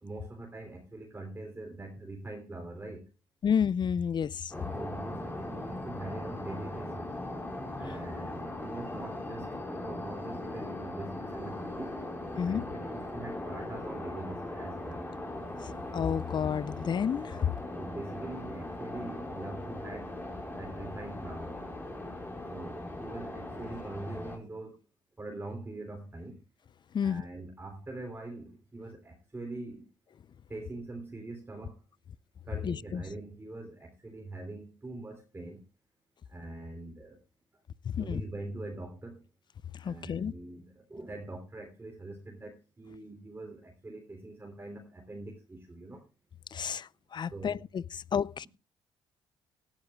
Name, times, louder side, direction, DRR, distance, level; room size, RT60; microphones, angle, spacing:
voice 1, 0.0-3.0 4.7-7.2 7.8-12.0 12.4-15.0 17.8-20.2 20.5-21.6 22.5-24.8 25.2-26.4 27.0-29.9 30.5-31.8 32.5-35.6 36.3-37.2 38.0-39.2 39.8-46.0 47.3-47.6, right 2 dB, 20° right, 3.5 m, -43 dB
voice 2, 3.4-4.5 12.4-12.7 15.6-17.5 26.9-27.2 32.6-33.0 37.8-38.2 39.7-40.3 46.5-48.5, left 7 dB, 45° left, 0.5 m, -31 dB
sound 1, 4.5-24.4, left 1 dB, 20° left, 5.1 m, -39 dB
18.0 x 11.5 x 2.4 m
supercardioid pair, 60°, 11 cm